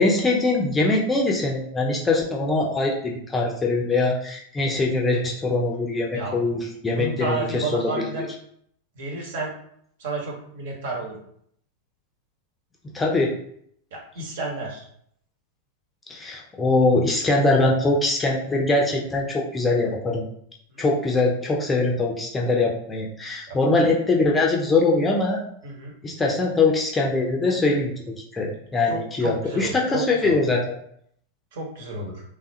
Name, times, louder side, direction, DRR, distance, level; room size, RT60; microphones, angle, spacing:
voice 1, 0.0-8.1 12.9-13.4 16.1-20.2 20.8-25.4 26.0-30.8, left 2 dB, 15° left, -2 dB, 0.6 m, -22 dB
voice 2, 6.1-6.7 6.9-8.3 8.9-9.5 10.0-11.1 13.9-14.8 20.7-20.8 23.5-23.6 25.6-25.9 28.9-30.4 31.5-32.2, right 3 dB, 55° right, -2 dB, 1.0 m, -31 dB
3.3 x 2.3 x 2.7 m, 0.66 s
figure-of-eight pair, 90°, 0 cm